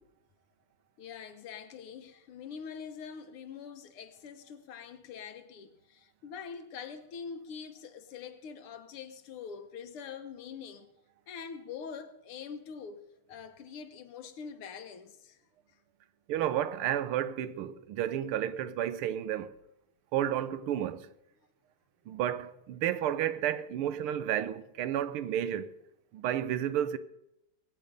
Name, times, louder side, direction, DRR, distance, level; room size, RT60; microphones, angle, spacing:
voice 1, 1.0-10.9 11.3-15.4, left 6 dB, 85° left, 2.0 m, -44 dB
voice 2, 16.3-19.5 20.1-21.1 22.1-25.7 26.1-27.0, right 11 dB, 85° right, 1.7 m, -31 dB
21.0 x 8.8 x 5.2 m
omnidirectional pair, 2.4 m